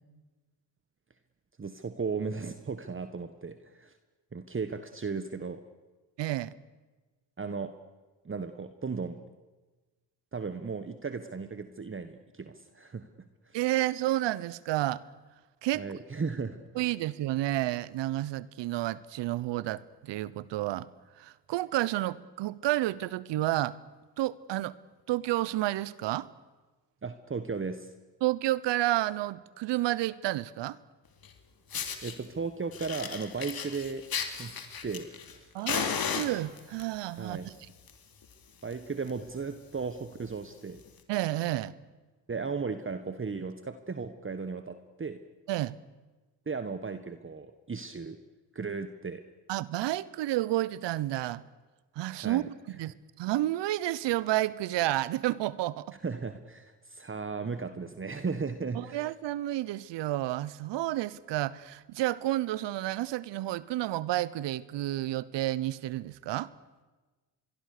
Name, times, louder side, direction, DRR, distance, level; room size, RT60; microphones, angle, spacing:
voice 1, 1.6-3.9 4.3-5.6 7.4-7.7 8.2-9.2 10.3-13.1 13.4-13.6 15.7-16.6 27.0-27.9 32.0-34.5 34.8-35.5 37.2-37.5 38.6-40.8 42.3-45.2 46.5-48.2 48.5-49.2 52.2-52.5 56.0-59.0, right 4 dB, 30° right, 10 dB, 1.5 m, -36 dB
voice 2, 6.2-6.5 13.5-15.0 15.6-15.8 16.7-20.9 21.2-23.8 24.2-24.8 25.1-26.3 28.2-30.8 35.5-37.5 41.1-41.7 45.5-45.8 49.5-51.4 52.0-55.9 58.7-66.5, right 15 dB, 75° right, 20 dB, 1.0 m, -30 dB
Fire, 31.2-31.3 31.7-32.1 32.7-35.3 35.7-36.8 37.6-37.9 38.2-38.3 38.7-38.8 39.0-39.3 39.8-39.9 40.9-41.0, left 7 dB, 55° left, 2.8 m, -34 dB
26.5 x 22.5 x 6.8 m, 1.2 s
supercardioid pair, 55°, 44 cm